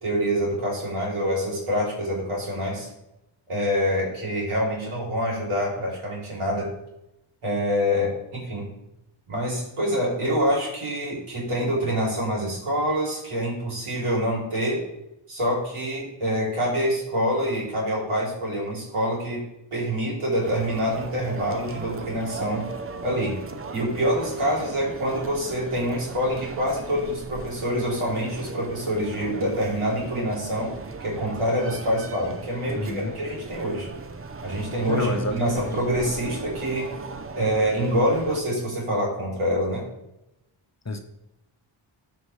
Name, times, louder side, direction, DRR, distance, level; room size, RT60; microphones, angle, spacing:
voice 1, 0.0-2.9 3.5-6.7 7.4-8.7 9.3-14.8 15.3-19.4 19.7-22.6 23.0-23.4 23.7-30.7 31.0-33.9 34.4-36.9 37.4-39.8, equal, 85° right, -4 dB, 3.2 m, -26 dB
sound 1, 20.4-38.4, right 4 dB, 30° right, 0.6 m, -38 dB
voice 2, 32.7-33.1 34.9-35.7 40.8-41.0, left 2 dB, 35° left, 5 dB, 1.0 m, -30 dB
13.5 x 4.7 x 3.2 m, 0.87 s
cardioid pair, 70°, 49 cm